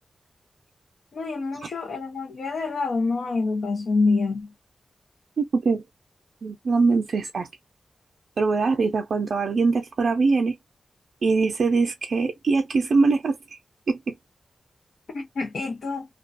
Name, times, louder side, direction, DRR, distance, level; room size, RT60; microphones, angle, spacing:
voice 1, 1.1-4.5 15.1-16.1, left 3 dB, 75° left, 0.7 m, -26 dB
voice 2, 5.4-5.8 6.4-7.5 8.4-10.6 11.2-13.6 13.9-14.2, right 4 dB, 65° right, 0.4 m, -22 dB
2.3 x 2.2 x 2.5 m
wide cardioid pair, 145°, 0 cm